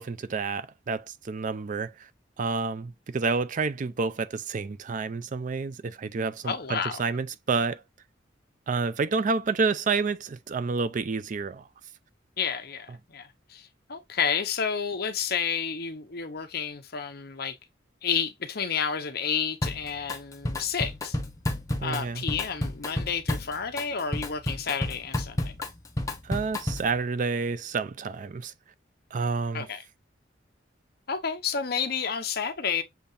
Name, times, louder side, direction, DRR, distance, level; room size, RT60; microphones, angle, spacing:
voice 1, 0.0-1.9 2.4-7.8 8.7-11.7 21.8-22.2 26.2-28.5 29.1-29.7, right 4 dB, 45° right, 0.4 m, -29 dB
voice 2, 6.4-7.0 12.4-17.6 18.0-21.2 21.8-25.5 29.5-29.8 31.1-32.8, left 6 dB, 60° left, 0.8 m, -30 dB
Drum kit, 19.6-20.2 20.5-27.0, left 1 dB, 20° left, 0.8 m, -31 dB
7.0 x 2.8 x 2.6 m
head